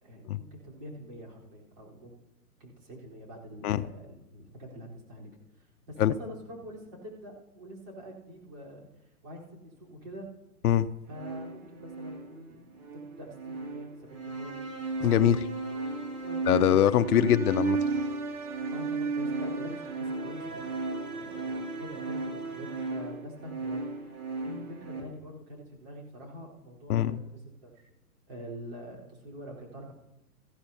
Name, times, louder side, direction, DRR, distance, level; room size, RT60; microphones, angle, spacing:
voice 1, 0.0-2.1 2.6-5.3 5.6-10.3 11.1-14.6 16.2-16.7 18.7-20.6 21.1-27.9 28.3-29.9, equal, 35° right, -3 dB, 4.0 m, -45 dB
sound 1, 11.1-25.0, right 3 dB, 70° right, 2.6 m, -34 dB
voice 2, 15.0-15.5 16.5-17.8 26.9-27.2, left 10 dB, 75° left, 11 dB, 0.6 m, -23 dB
15.0 x 12.5 x 2.8 m, 0.96 s
hypercardioid pair, 140°, 46 cm